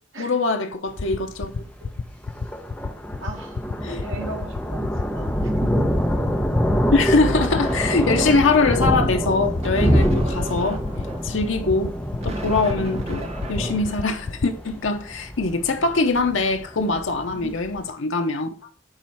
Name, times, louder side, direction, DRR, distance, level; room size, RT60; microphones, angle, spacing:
voice 1, 0.2-1.5 3.8-4.0 6.9-10.8 11.2-11.9 12.2-18.5, left 3 dB, 80° left, 0.8 m, -22 dB
sound 1, 0.7-14.5, left 4 dB, 50° left, 0.5 m, -29 dB
Thunder, 0.9-17.8, equal, 5° left, 1.4 m, -26 dB
voice 2, 3.2-3.6 3.9-5.9 17.3-17.6, right 2 dB, 80° right, 1.3 m, -37 dB
sound 2, 7.4-9.0 9.6-14.7, right 1 dB, 35° right, 1.3 m, -35 dB
8.8 x 3.1 x 5.7 m
head